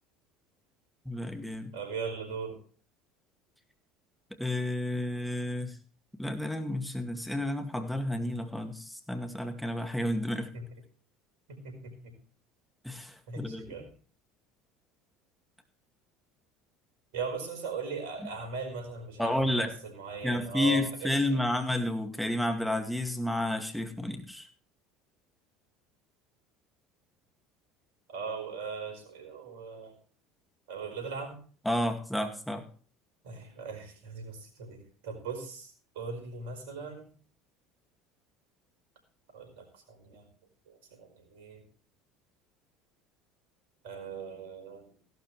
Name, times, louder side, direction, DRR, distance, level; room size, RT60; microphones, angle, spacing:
voice 1, 1.1-1.7 4.4-5.8 6.2-10.5 12.8-13.7 19.2-19.7 20.2-24.5 31.7-32.6, left 1 dB, ahead, 5 dB, 2.1 m, -31 dB
voice 2, 1.7-2.6 10.5-10.7 11.5-12.1 13.3-13.9 17.1-21.5 28.1-30.0 30.7-31.4 33.2-37.1 39.3-40.3 40.7-41.6 43.8-44.8, right 5 dB, 75° right, 5 dB, 4.9 m, -39 dB
16.0 x 12.5 x 3.2 m, 0.41 s
hypercardioid pair, 70°, 0 cm